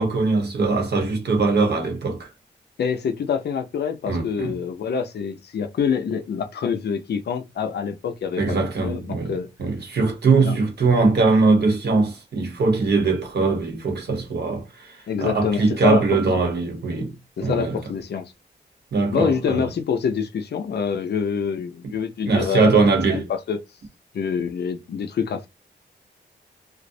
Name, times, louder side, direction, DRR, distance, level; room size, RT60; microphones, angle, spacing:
voice 1, 0.0-2.3 4.1-4.5 8.4-17.1 17.4-17.8 18.9-19.7 22.3-23.2, right 3 dB, 65° right, 0.9 m, -21 dB
voice 2, 2.8-9.5 10.4-10.6 15.1-16.2 17.4-18.3 19.1-22.8 23.1-23.6 24.1-25.5, left 6 dB, 65° left, 0.5 m, -26 dB
2.3 x 2.0 x 2.6 m
cardioid pair, 75°, 19 cm